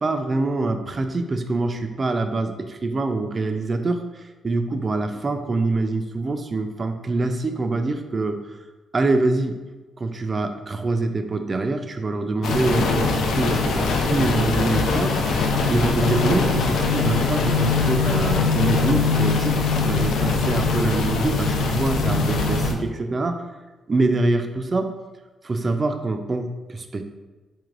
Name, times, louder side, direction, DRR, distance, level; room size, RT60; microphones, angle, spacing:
voice 1, 0.0-8.4 8.9-9.6 10.0-15.2 15.7-19.6 19.9-23.5 23.9-24.9 25.4-27.0, right 2 dB, 35° right, 7 dB, 0.4 m, -25 dB
sound 1, 12.4-22.7, left 4 dB, 85° left, 0.4 m, -21 dB
4.4 x 3.2 x 2.4 m, 1.2 s
cardioid pair, 95°, 0 cm